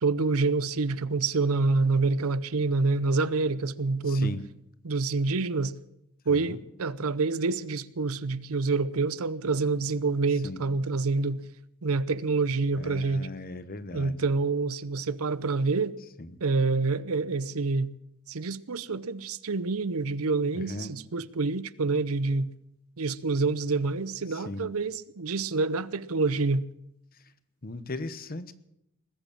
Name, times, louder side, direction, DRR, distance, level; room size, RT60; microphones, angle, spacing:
voice 1, 0.0-4.3 4.8-5.7 6.3-11.4 11.8-13.3 13.9-16.0 16.4-17.9 18.3-22.5 23.0-26.7, right 3 dB, 70° right, 0.7 m, -27 dB
voice 2, 4.1-4.4 6.3-6.6 10.4-10.7 12.8-14.2 16.2-16.4 20.5-20.9 24.3-24.7 27.6-28.5, left 2 dB, 40° left, 1.0 m, -38 dB
20.5 x 8.2 x 8.6 m
head